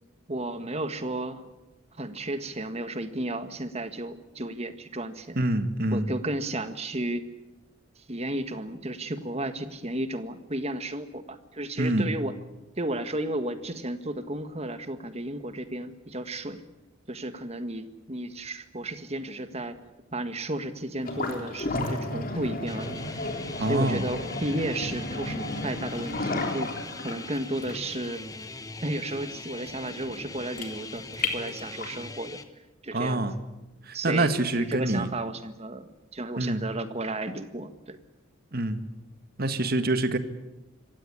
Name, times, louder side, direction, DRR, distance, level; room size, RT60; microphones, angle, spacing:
voice 1, 0.3-1.5 2.0-5.4 5.9-7.2 8.0-12.4 12.8-16.6 17.1-19.8 20.1-23.0 23.6-26.7 27.0-28.2 28.8-32.4 32.8-33.3 33.9-38.0, right 1 dB, 30° right, 10 dB, 1.6 m, -33 dB
voice 2, 5.4-6.1 11.8-12.1 23.6-24.0 32.9-33.4 33.9-35.1 36.4-36.6 38.5-38.8 39.4-40.2, right 2 dB, 50° right, 10 dB, 1.7 m, -26 dB
sound 1, 21.0-32.0, left 2 dB, 45° left, 3.5 m, -33 dB
sound 2, 22.7-32.4, left 3 dB, 20° left, 1.3 m, -41 dB
26.0 x 16.0 x 9.9 m, 1.1 s
head